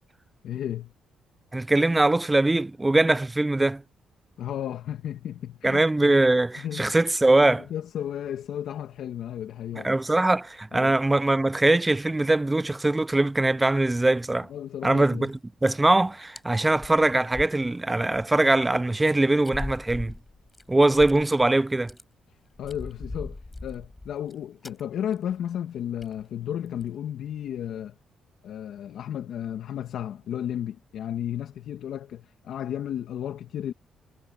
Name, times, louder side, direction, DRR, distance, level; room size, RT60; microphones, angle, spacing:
voice 1, 0.4-0.9 4.4-6.1 6.6-6.9 7.6-10.0 10.7-10.9 14.5-15.3 22.6-28.0 28.4-33.7, left 10 dB, 70° left, 2.0 m, -33 dB
voice 2, 1.5-3.8 5.6-7.7 9.8-14.5 14.8-20.2 20.7-21.9, right 2 dB, 15° right, 0.4 m, -22 dB
sound 1, 15.3-15.4 15.6-16.0 16.4-16.5 16.7-18.3 18.6-18.7 19.5-21.5 21.7-22.0 22.5-24.3 24.6-24.8 25.1-25.3 25.6-25.7 26.0-26.2 26.7-26.9, left 2 dB, 15° left, 5.3 m, -40 dB
cardioid pair, 90°, 0 cm